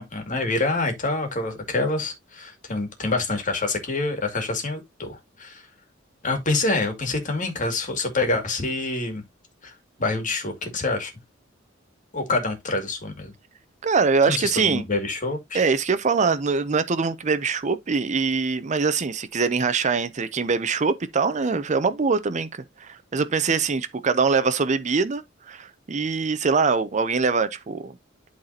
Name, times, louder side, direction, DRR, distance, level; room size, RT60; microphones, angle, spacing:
voice 1, 0.0-5.6 6.2-9.2 9.6-9.7 10.0-11.1 12.1-13.3 14.3-15.6, left 2 dB, 40° left, 2.2 m, -26 dB
voice 2, 13.8-14.8 15.5-27.9, right 4 dB, 35° right, 0.6 m, -23 dB
12.0 x 4.0 x 2.8 m
head